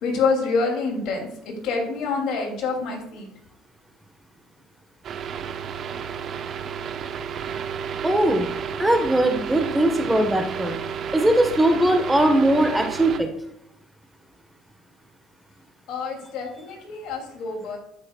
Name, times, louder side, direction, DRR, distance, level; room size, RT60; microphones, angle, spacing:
voice 1, 0.0-3.3 15.9-17.8, left 4 dB, 65° left, 0 dB, 3.0 m, -27 dB
sound 1, 5.0-13.2, right 7 dB, 50° right, 1.0 m, -32 dB
voice 2, 8.0-8.5 8.8-10.8 11.1-13.3, right 1 dB, 5° right, 5 dB, 1.5 m, -20 dB
15.5 x 6.5 x 2.5 m, 0.77 s
supercardioid pair, 85°, 0 cm